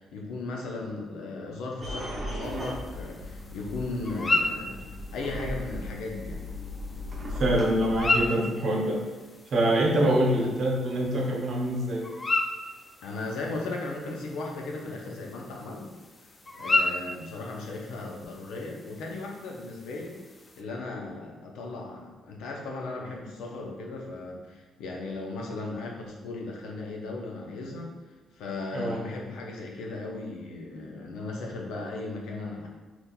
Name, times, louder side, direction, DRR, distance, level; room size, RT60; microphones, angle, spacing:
voice 1, 0.0-4.9 5.1-6.4 13.0-15.9 16.6-20.2 20.6-27.9 28.3-32.7, left 2 dB, 90° left, 0 dB, 0.6 m, -36 dB
sound 1, 1.8-8.3, left 1 dB, 35° right, 0.7 m, -37 dB
sound 2, 2.4-20.6, left 2 dB, 30° left, 0.3 m, -34 dB
voice 2, 7.3-9.0 9.5-12.0 28.7-29.0, right 1 dB, 60° right, -1 dB, 0.8 m, -25 dB
3.7 x 2.9 x 2.2 m, 1.3 s
cardioid pair, 90°, 0 cm